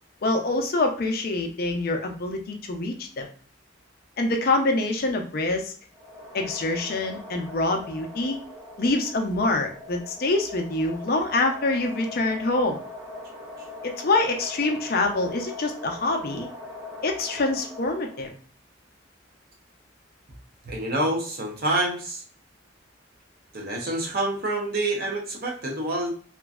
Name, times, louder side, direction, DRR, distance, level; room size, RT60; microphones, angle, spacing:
voice 1, 0.2-3.3 4.2-5.7 6.3-8.4 8.8-12.8 13.8-16.5 17.0-18.3, left 2 dB, 50° left, 4 dB, 0.5 m, -25 dB
sound 1, 5.9-18.4, left 2 dB, 15° right, 1.0 m, -41 dB
voice 2, 20.6-22.2 23.5-26.1, right 1 dB, 55° right, 0 dB, 0.8 m, -27 dB
2.9 x 2.5 x 2.3 m, 0.43 s
head